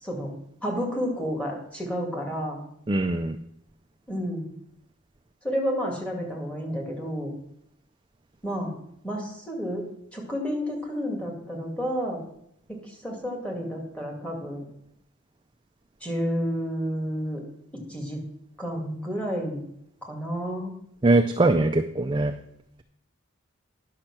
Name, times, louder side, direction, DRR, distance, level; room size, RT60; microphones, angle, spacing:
voice 1, 0.6-2.6 4.1-4.5 5.4-7.3 8.4-8.7 9.0-9.9 10.1-12.2 12.7-14.7 16.0-17.4 17.7-18.2 18.6-19.6 20.0-20.7, equal, 5° left, 0 dB, 2.1 m, -30 dB
voice 2, 2.9-3.4 21.0-22.4, right 2 dB, 20° right, 6 dB, 0.4 m, -22 dB
10.0 x 6.5 x 6.0 m, 0.74 s
head